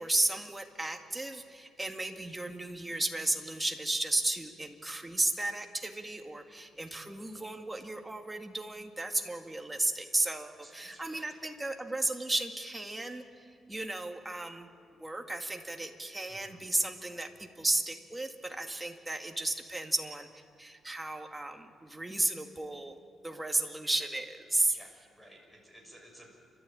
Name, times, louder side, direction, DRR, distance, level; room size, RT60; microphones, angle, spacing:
voice 1, 0.0-14.7 15.0-24.8, right 2 dB, 15° right, 4 dB, 1.9 m, -34 dB
voice 2, 10.6-11.3 16.3-16.6 24.7-26.3, equal, 5° left, 0 dB, 6.4 m, -55 dB
30.0 x 13.0 x 8.7 m, 2.3 s
cardioid pair, 105°, 0 cm